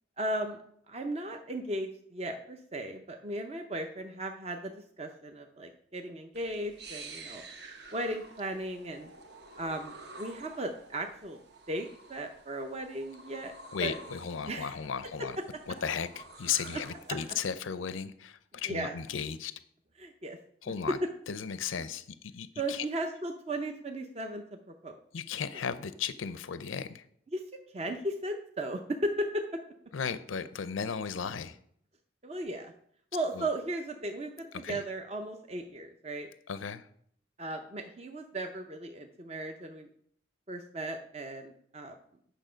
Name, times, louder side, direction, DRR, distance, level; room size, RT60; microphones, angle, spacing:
voice 1, 0.2-0.6 0.9-7.5 7.9-9.1 9.6-11.4 11.7-13.5 13.8-13.9 14.5-14.8 15.2-15.3 18.7-18.9 20.0-20.4 20.9-21.0 22.6-25.0 27.3-27.4 27.7-29.4 32.2-32.7 33.1-36.3 37.4-39.9 40.5-42.0, right 1 dB, 30° right, 4 dB, 0.6 m, -36 dB
sound 1, 6.3-17.4, right 3 dB, 55° right, 1.1 m, -50 dB
voice 2, 13.7-15.4 15.7-19.6 20.6-21.0 21.3-22.9 25.1-27.1 29.9-31.6 33.4-33.5 34.6-34.8 36.5-36.9, left 7 dB, 80° left, 13 dB, 0.5 m, -35 dB
9.0 x 6.6 x 5.1 m, 0.65 s
head